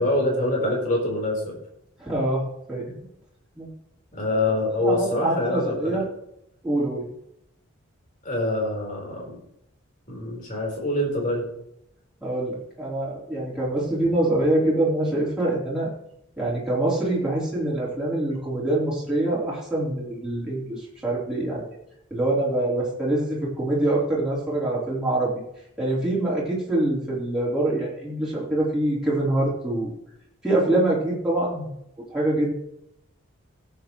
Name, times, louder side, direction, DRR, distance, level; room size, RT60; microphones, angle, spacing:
voice 1, 0.0-1.6 4.1-6.0 8.2-9.4 10.1-11.5, left 1 dB, 40° left, -1 dB, 4.1 m, -25 dB
voice 2, 2.0-2.9 3.6-3.7 4.8-6.1 6.6-7.1 12.2-15.9 16.4-21.8 22.1-25.3 25.8-29.9 30.4-31.7 32.1-32.6, right 1 dB, 5° right, -7 dB, 3.7 m, -25 dB
17.0 x 8.1 x 3.1 m, 0.78 s
head